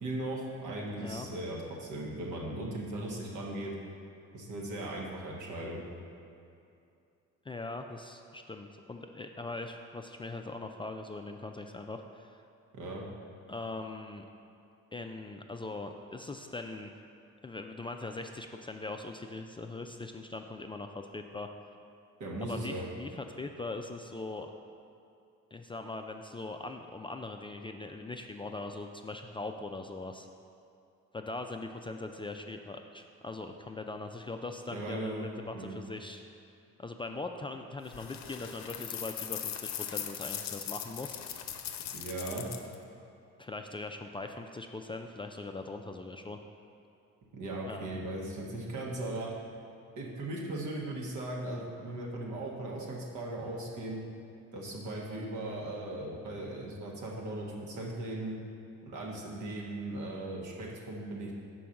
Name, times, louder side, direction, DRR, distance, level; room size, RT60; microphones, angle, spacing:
voice 1, 0.0-3.7 4.3-5.8 12.7-13.0 22.2-22.8 34.7-35.3 35.5-35.7 41.9-42.5 47.3-49.3 49.9-54.0 54.5-58.3 58.8-61.3, right 1 dB, 75° right, -2 dB, 1.4 m, -38 dB
voice 2, 7.5-12.4 13.5-14.2 14.9-16.9 17.4-21.5 22.4-24.5 25.5-30.3 31.1-36.2 36.8-41.2 43.4-46.4 47.7-48.0, left 2 dB, 15° left, 4 dB, 0.3 m, -41 dB
sound 1, 37.9-42.7, left 9 dB, 65° left, 0.6 m, -39 dB
5.7 x 4.6 x 6.3 m, 2.6 s
cardioid pair, 90°, 30 cm